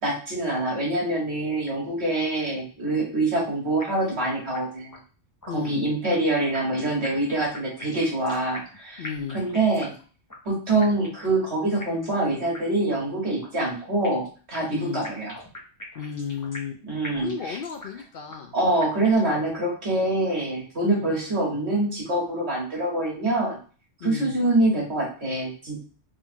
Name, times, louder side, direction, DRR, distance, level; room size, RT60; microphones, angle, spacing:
voice 1, 0.0-5.0 5.5-9.9 10.5-15.3 16.9-17.6 18.5-23.6 24.0-25.8, right 2 dB, 65° right, -3 dB, 1.9 m, -25 dB
sound 1, 3.8-4.2 4.5-4.6 4.9-5.0 5.4-6.3 6.5-8.8 9.0-10.0 10.3-10.4 10.8-11.3 11.8-12.2 12.5-12.6 12.9-13.0 13.4-14.3 14.5-16.8 17.0-18.0 18.3-18.4 18.8-19.3, left 1 dB, 20° left, 0.8 m, -42 dB
voice 2, 5.5-5.8 9.0-9.4 14.7-15.0 16.0-16.8 17.2-18.5 20.8-21.1 24.0-24.3, left 7 dB, 60° left, 4 dB, 0.6 m, -33 dB
3.7 x 2.4 x 4.3 m, 0.38 s
omnidirectional pair, 1.2 m